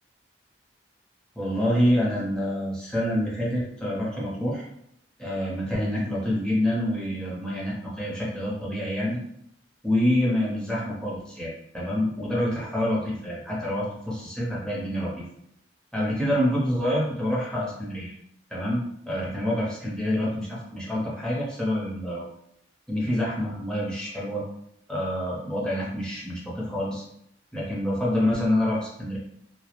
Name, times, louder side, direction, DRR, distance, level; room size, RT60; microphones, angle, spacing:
voice 1, 1.4-4.6 5.2-9.2 9.8-15.2 15.9-18.1 18.5-22.2 22.9-24.4 24.9-27.0 27.5-29.2, left 1 dB, 5° left, -6 dB, 0.6 m, -27 dB
2.2 x 2.0 x 2.9 m, 0.74 s
head